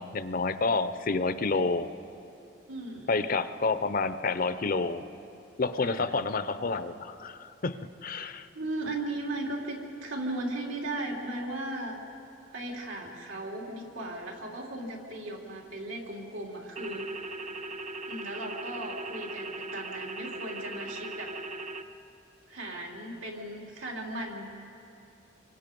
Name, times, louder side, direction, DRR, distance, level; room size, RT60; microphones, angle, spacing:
voice 1, 0.0-1.9 3.1-5.0 5.6-8.5, left 3 dB, 45° left, 12 dB, 0.6 m, -29 dB
voice 2, 2.7-3.3 5.8-6.1 8.5-12.0 12.5-17.4 18.1-21.4 22.5-24.5, right 1 dB, 85° right, -1 dB, 3.3 m, -37 dB
sound 1, 16.8-21.8, right 3 dB, 35° right, 0.7 m, -39 dB
27.0 x 24.5 x 5.3 m, 2.8 s
head